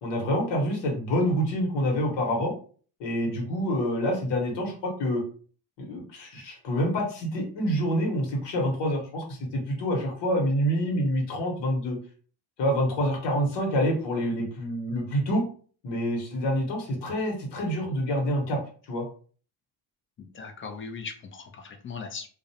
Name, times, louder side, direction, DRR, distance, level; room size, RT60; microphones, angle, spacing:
voice 1, 0.0-2.5 3.0-5.2 5.8-12.0 12.6-15.4 15.8-18.6 18.9-19.0, equal, 75° left, 0 dB, 1.1 m, -27 dB
voice 2, 20.2-22.3, left 5 dB, 30° left, 5 dB, 0.5 m, -39 dB
2.5 x 2.0 x 2.7 m, 0.43 s
cardioid pair, 115°, 43 cm